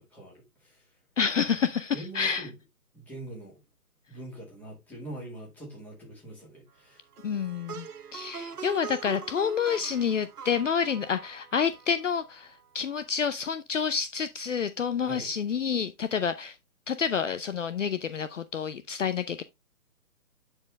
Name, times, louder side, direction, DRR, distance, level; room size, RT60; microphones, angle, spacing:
voice 1, 0.0-1.0 1.9-2.5 2.9-3.6 4.1-7.1 15.0-15.3, right 1 dB, 5° left, 2.2 m, -43 dB
voice 2, 1.2-2.5 7.2-7.9 8.1-16.6 16.9-19.4, left 7 dB, 55° left, 0.7 m, -28 dB
Plucked string instrument, 7.1-12.4, right 6 dB, 75° right, 1.1 m, -43 dB
10.5 x 4.6 x 3.2 m
hypercardioid pair, 165°, 46 cm